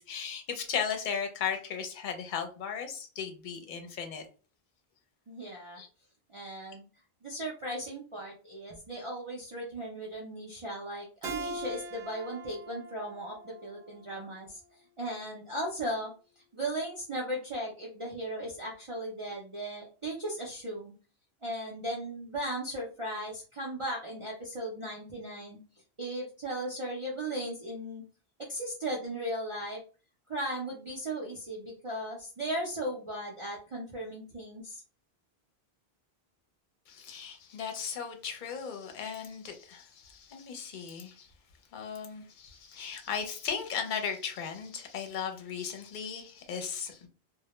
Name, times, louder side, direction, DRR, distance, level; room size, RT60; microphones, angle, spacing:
voice 1, 0.0-4.2 5.8-5.9 36.9-41.3 41.7-47.1, left 7 dB, 55° left, 5 dB, 0.7 m, -36 dB
voice 2, 5.3-5.8 6.3-6.9 7.2-14.6 15.0-16.1 16.5-20.9 21.4-25.6 26.0-28.0 28.5-29.8 30.3-34.8, right 1 dB, 40° right, -3 dB, 0.5 m, -37 dB
Keyboard (musical), 11.2-14.5, right 1 dB, 80° right, 0.9 m, -42 dB
2.1 x 2.1 x 2.9 m, 0.36 s
omnidirectional pair, 1.1 m